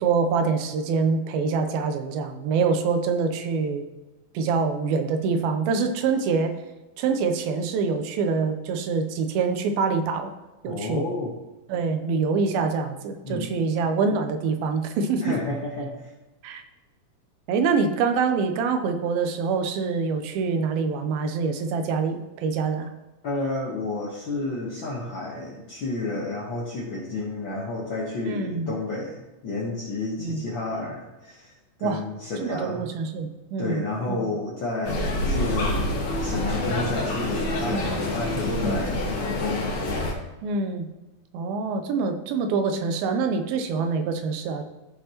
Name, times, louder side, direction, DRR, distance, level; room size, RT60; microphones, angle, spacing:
voice 1, 0.0-3.8 4.3-6.6 7.0-10.3 10.6-11.0 11.7-15.4 16.4-16.6 17.5-22.9 28.2-28.7 30.2-30.4 31.8-32.0 32.4-33.8 34.1-34.2 37.7-37.9 38.6-38.9 40.4-40.9 41.3-44.6, right 5 dB, 85° right, 7 dB, 2.6 m, -25 dB
voice 2, 10.7-11.3 13.2-13.5 15.2-16.1 23.2-32.8 33.6-35.9 36.2-39.7, left 2 dB, 75° left, -4 dB, 1.0 m, -31 dB
sound 1, 34.8-40.1, left 1 dB, 60° left, 2.5 m, -27 dB
15.0 x 5.5 x 3.0 m, 1.1 s
omnidirectional pair, 4.2 m